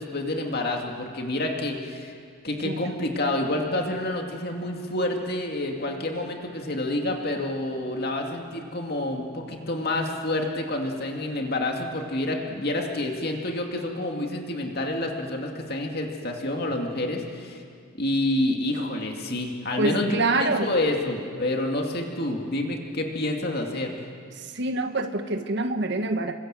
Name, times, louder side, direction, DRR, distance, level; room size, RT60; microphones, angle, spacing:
voice 1, 0.0-2.2 2.4-17.6 17.9-24.1, left 1 dB, 45° left, 2 dB, 2.4 m, -28 dB
voice 2, 19.8-20.7 24.5-26.3, right 2 dB, 50° right, 7 dB, 1.5 m, -26 dB
27.5 x 25.5 x 7.7 m, 2.3 s
head